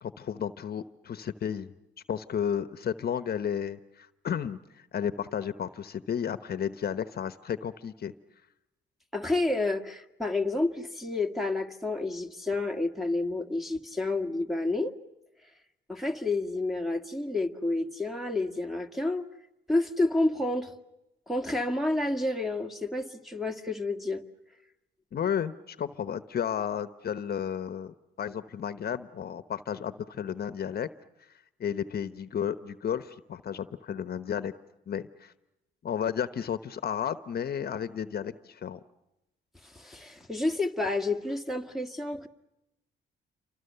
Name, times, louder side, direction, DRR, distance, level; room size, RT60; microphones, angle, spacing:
voice 1, 0.0-1.7 2.1-8.1 25.1-30.9 31.6-34.5 34.9-35.3 35.8-38.8, left 8 dB, 50° left, 12 dB, 1.0 m, -33 dB
voice 2, 9.1-15.0 15.9-19.2 19.7-20.7 21.3-24.2 39.6-42.3, left 2 dB, ahead, 2 dB, 1.8 m, -29 dB
29.0 x 25.0 x 6.8 m, 0.93 s
cardioid pair, 90°, 20 cm